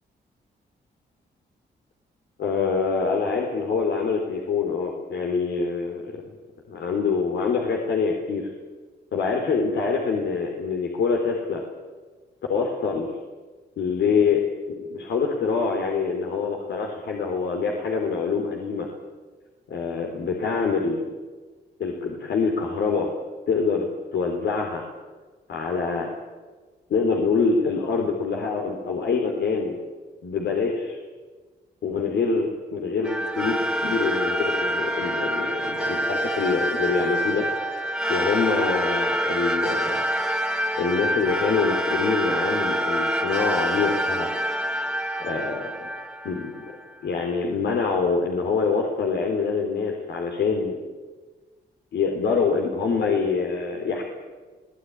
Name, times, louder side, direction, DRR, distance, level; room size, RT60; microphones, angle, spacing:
voice 1, 2.4-6.3 6.7-8.5 9.1-11.6 12.5-13.1 13.8-14.4 14.8-18.9 19.7-21.0 21.8-23.1 23.5-24.8 25.5-26.1 26.9-29.8 30.2-31.0 31.8-37.5 38.1-40.0 40.8-44.3 45.2-45.9 46.2-46.8 47.0-50.8 51.9-54.0, left 5 dB, 75° left, 1 dB, 3.6 m, -25 dB
sound 1, 33.0-46.8, right 1 dB, 5° right, 2.0 m, -26 dB
23.0 x 18.0 x 9.8 m, 1.4 s
cardioid pair, 75°, 18 cm